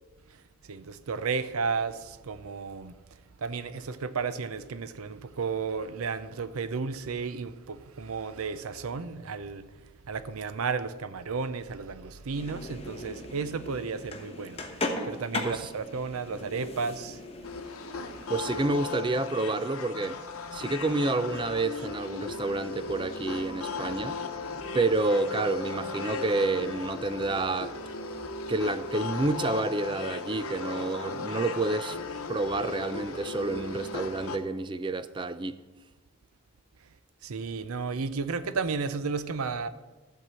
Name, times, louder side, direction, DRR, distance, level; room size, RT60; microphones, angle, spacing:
voice 1, 0.7-2.9 3.4-9.6 10.1-14.6 15.1-17.2 37.2-39.7, right 5 dB, 85° right, 0.6 m, -33 dB
sound 1, 12.3-18.6, left 2 dB, 30° left, 1.0 m, -38 dB
sound 2, 17.4-34.4, left 4 dB, 85° left, 0.9 m, -37 dB
voice 2, 18.3-20.2 20.5-24.2 24.7-27.8 28.5-32.0 32.3-35.6, right 2 dB, 20° right, 0.4 m, -29 dB
13.5 x 4.7 x 7.4 m
head